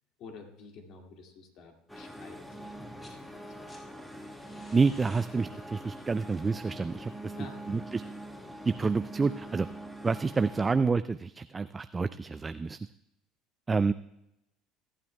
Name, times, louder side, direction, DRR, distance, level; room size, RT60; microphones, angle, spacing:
voice 1, 0.2-4.1 7.4-7.8, left 4 dB, 60° left, 3 dB, 2.2 m, -50 dB
sound 1, 1.9-10.7, right 1 dB, 5° left, 1.9 m, -44 dB
sound 2, 2.9-3.2 3.5-8.3 9.6-9.7, left 2 dB, 30° left, 4.8 m, -57 dB
voice 2, 4.7-7.4 7.7-8.0 8.6-9.7 10.0-12.8 13.7-13.9, right 4 dB, 25° right, 13 dB, 0.3 m, -28 dB
26.0 x 9.1 x 2.3 m, 0.86 s
hypercardioid pair, 75°, 0 cm